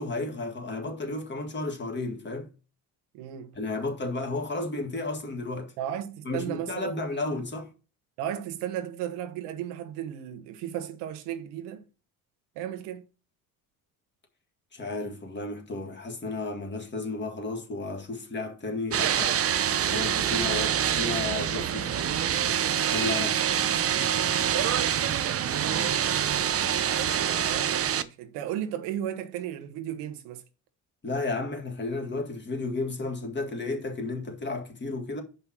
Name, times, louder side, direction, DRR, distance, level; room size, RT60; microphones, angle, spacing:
voice 1, 0.0-2.5 3.6-5.7 6.3-7.7 14.7-19.4 19.9-21.9 22.9-23.4 31.0-35.2, left 2 dB, 25° left, 1.9 m, -33 dB
voice 2, 3.1-3.6 5.8-7.3 8.2-11.8 12.6-13.0 27.0-30.4, right 10 dB, 85° right, 1.1 m, -35 dB
sound 1, 18.9-28.0, right 9 dB, 35° right, 0.6 m, -26 dB
5.6 x 5.3 x 5.9 m
supercardioid pair, 90°, 39 cm